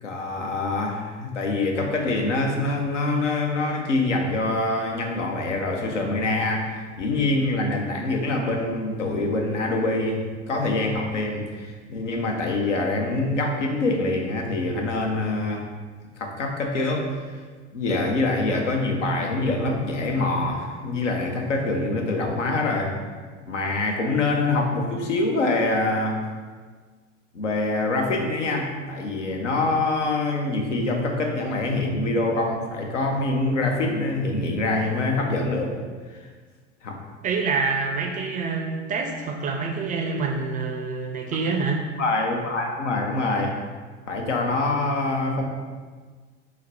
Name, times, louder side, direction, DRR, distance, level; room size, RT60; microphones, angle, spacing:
voice 1, 0.0-15.6 16.2-17.1 17.7-23.0 23.4-26.2 27.3-35.7 36.1-36.3 36.8-37.0 42.0-43.6 44.1-45.4, left 2 dB, 85° left, 1 dB, 0.7 m, -25 dB
voice 2, 37.2-41.8, right 4 dB, 25° right, 3 dB, 0.4 m, -26 dB
4.0 x 2.0 x 4.4 m, 1.5 s
figure-of-eight pair, 80°, 36 cm